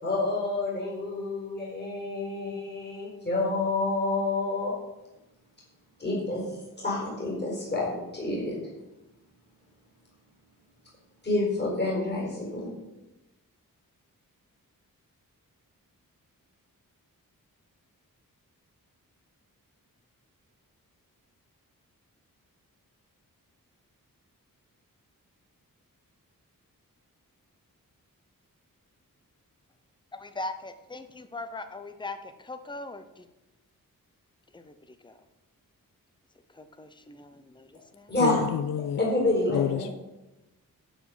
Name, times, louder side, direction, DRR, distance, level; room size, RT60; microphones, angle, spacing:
voice 1, 0.0-4.7 6.0-6.6 6.8-8.6 11.2-12.7 38.1-38.4 39.0-39.9, left 2 dB, 30° left, 4.5 m, -28 dB
voice 2, 30.1-33.3 34.5-35.2 36.5-38.1, left 2 dB, 15° left, 0.8 m, -40 dB
voice 3, 38.2-39.0 39.5-39.9, left 10 dB, 70° left, 0.5 m, -28 dB
11.0 x 4.9 x 7.5 m
wide cardioid pair, 105°, 34 cm